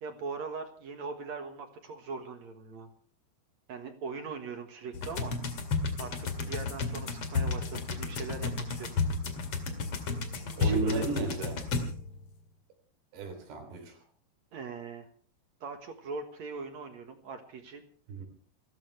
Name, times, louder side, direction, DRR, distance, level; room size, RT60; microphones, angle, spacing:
voice 1, 0.0-2.9 3.7-5.3 6.0-9.0 10.4-11.2 14.5-15.1 15.6-17.8, right 4 dB, 55° right, 6 dB, 2.3 m, -40 dB
sound 1, 4.9-12.2, left 4 dB, 45° left, 2.6 m, -32 dB
voice 2, 10.6-11.6 13.1-14.0 18.1-18.2, right 3 dB, 85° right, 3 dB, 5.5 m, -33 dB
29.5 x 14.0 x 3.3 m, 0.43 s
omnidirectional pair, 4.6 m